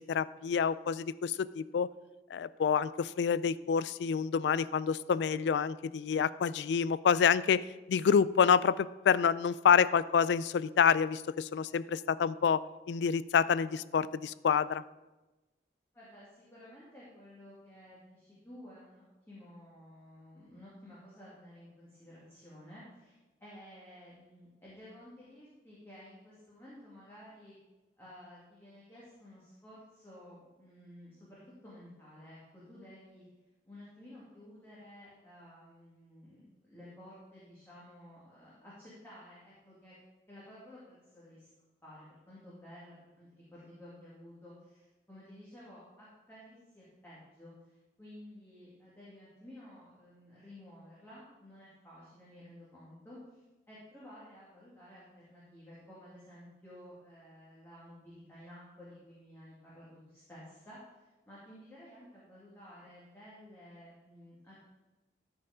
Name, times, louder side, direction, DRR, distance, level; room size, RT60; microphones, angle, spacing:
voice 1, 0.0-1.9 2.3-12.6 12.9-14.8, left 7 dB, 80° left, 17 dB, 0.3 m, -28 dB
voice 2, 15.9-27.6 28.0-33.2 33.6-40.0 40.3-41.5 41.8-64.7, left 1 dB, 15° left, -9 dB, 2.2 m, -53 dB
13.0 x 4.6 x 4.9 m, 1.1 s
head